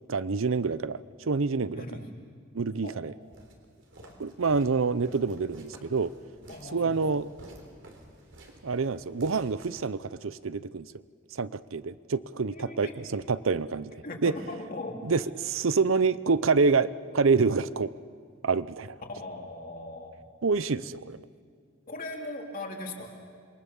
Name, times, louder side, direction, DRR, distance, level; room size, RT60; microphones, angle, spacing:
voice 1, 0.1-1.9 2.5-3.1 4.2-6.1 6.7-7.3 8.6-10.9 11.3-14.3 15.0-17.9 18.4-19.0 20.4-21.2, right 4 dB, 85° right, 17 dB, 0.7 m, -27 dB
voice 2, 1.7-2.0 2.8-3.0 4.0-4.2 6.5-7.0 12.5-12.9 14.0-15.0 19.2-20.2 21.9-23.1, left 2 dB, 45° left, 1 dB, 3.0 m, -39 dB
Walk footsteps, 3.3-10.2, right 1 dB, 65° right, 3.7 m, -51 dB
27.5 x 22.5 x 7.1 m, 2.1 s
head